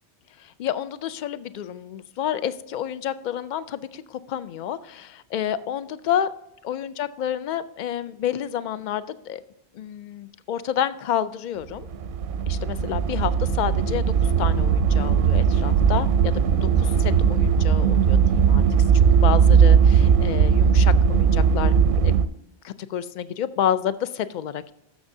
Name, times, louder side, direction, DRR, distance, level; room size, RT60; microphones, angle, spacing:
voice 1, 0.4-6.3 6.6-9.4 9.7-11.9 12.5-18.6 18.9-22.1 22.6-24.7, left 10 dB, 60° left, 15 dB, 0.5 m, -29 dB
sound 1, 11.8-22.2, right 7 dB, 60° right, 0.7 m, -18 dB
13.0 x 6.4 x 2.7 m, 0.83 s
omnidirectional pair, 1.1 m